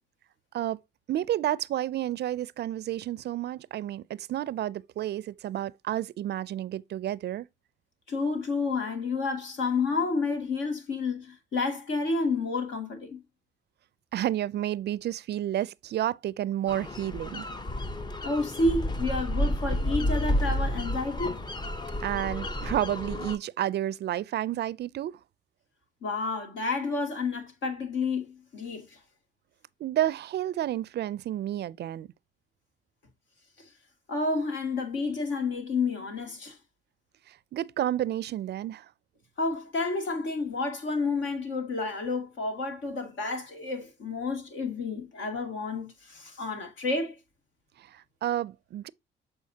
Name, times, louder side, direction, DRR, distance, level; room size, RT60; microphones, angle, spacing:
voice 1, 1.1-7.5 14.1-17.4 22.0-25.2 29.8-32.1 37.3-38.9 47.8-48.9, right 12 dB, 55° right, 0.4 m, -31 dB
voice 2, 8.1-13.2 18.2-21.4 26.0-29.0 34.1-36.6 39.4-47.2, left 3 dB, 75° left, 2.3 m, -30 dB
sound 1, 16.7-23.4, left 1 dB, 20° left, 0.7 m, -31 dB
7.4 x 4.7 x 2.7 m
cardioid pair, 90°, 20 cm